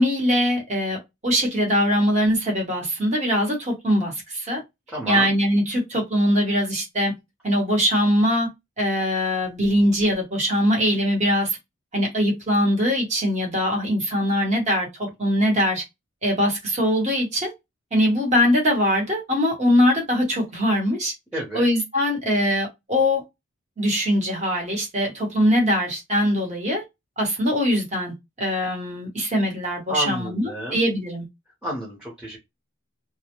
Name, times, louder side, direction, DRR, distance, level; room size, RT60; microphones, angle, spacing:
voice 1, 0.0-4.6 5.1-7.2 7.4-8.5 8.8-11.6 11.9-15.8 16.2-17.5 17.9-21.1 21.5-23.2 23.8-26.8 27.2-30.4 30.7-31.2, equal, 35° right, 1.0 m, -22 dB
voice 2, 4.9-5.4 21.3-21.7 29.9-30.9 31.6-32.4, right 1 dB, 5° right, 0.8 m, -30 dB
2.2 x 2.1 x 2.9 m
head